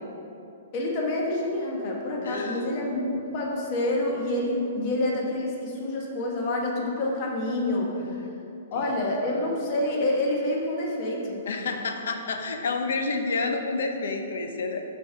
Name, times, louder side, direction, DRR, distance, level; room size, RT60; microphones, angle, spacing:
voice 1, 0.7-7.9 8.7-11.4, left 1 dB, 35° left, -2 dB, 1.0 m, -27 dB
voice 2, 2.2-2.9 8.8-9.0 11.5-14.8, left 3 dB, 75° left, 5 dB, 0.6 m, -29 dB
5.1 x 3.6 x 5.7 m, 2.7 s
hypercardioid pair, 155°, 0 cm